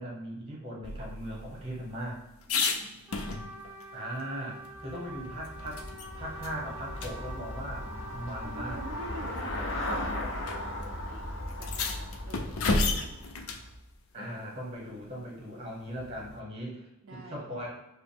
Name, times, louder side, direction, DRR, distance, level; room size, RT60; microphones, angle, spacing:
voice 1, 0.0-2.2 3.9-5.8 6.1-7.9 8.1-8.8 14.1-16.8 17.1-17.7, equal, 30° right, -2 dB, 1.1 m, -39 dB
sound 1, 0.8-3.8 4.2-4.3 4.6-6.1 6.4-6.6 7.0-7.1 8.2-8.3 9.2-9.4 10.4-10.6 10.8-10.9 11.5-13.7 16.0-16.4, left 3 dB, 85° left, 0.5 m, -33 dB
voice 2, 2.5-4.0 8.4-11.2 11.6-13.2 17.0-17.4, right 2 dB, 65° right, -1 dB, 0.4 m, -47 dB
Trumpet, 3.1-9.3, right 1 dB, 10° right, 0.4 m, -46 dB
Traffic noise roadway noise / Bicycle, 4.7-13.9, left 1 dB, 55° left, 0.7 m, -38 dB
4.8 x 2.1 x 3.4 m, 0.94 s
head